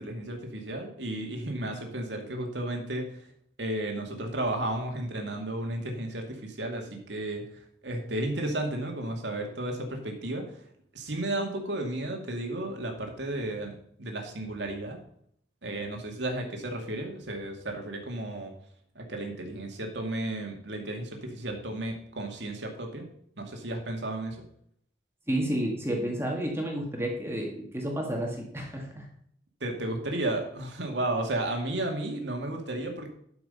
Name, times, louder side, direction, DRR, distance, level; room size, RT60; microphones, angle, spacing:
voice 1, 0.0-3.1 3.6-7.4 7.8-10.5 10.9-15.0 15.6-18.5 19.0-23.0 23.4-24.4 29.6-33.1, right 1 dB, 80° right, 2 dB, 2.3 m, -33 dB
voice 2, 25.3-29.1, right 1 dB, 15° right, 0 dB, 1.9 m, -31 dB
12.0 x 6.1 x 5.6 m, 0.68 s
head